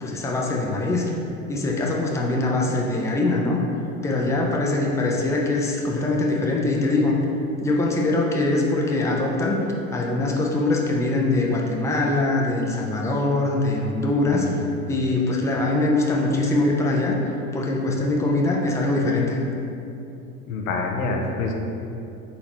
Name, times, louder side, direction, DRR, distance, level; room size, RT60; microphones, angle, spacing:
voice 1, 0.0-1.0 1.5-3.6 4.0-7.2 7.6-9.6 9.9-14.6 14.9-17.2 17.5-19.4, left 2 dB, 5° left, -1 dB, 0.5 m, -22 dB
voice 2, 20.5-21.5, left 3 dB, 80° left, 2 dB, 0.7 m, -27 dB
4.1 x 3.9 x 2.9 m, 2.7 s
hypercardioid pair, 85°, 41 cm